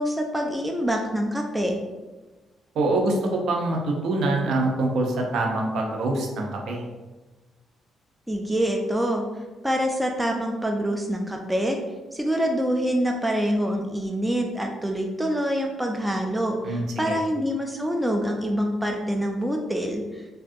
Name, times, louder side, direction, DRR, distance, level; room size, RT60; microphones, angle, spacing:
voice 1, 0.0-1.8 8.3-9.2 9.6-11.8 12.1-20.2, equal, 5° right, 2 dB, 0.3 m, -25 dB
voice 2, 2.7-6.8 16.6-17.1, right 2 dB, 75° right, 1 dB, 0.5 m, -25 dB
3.4 x 2.3 x 2.5 m, 1.2 s
cardioid pair, 90°, 0 cm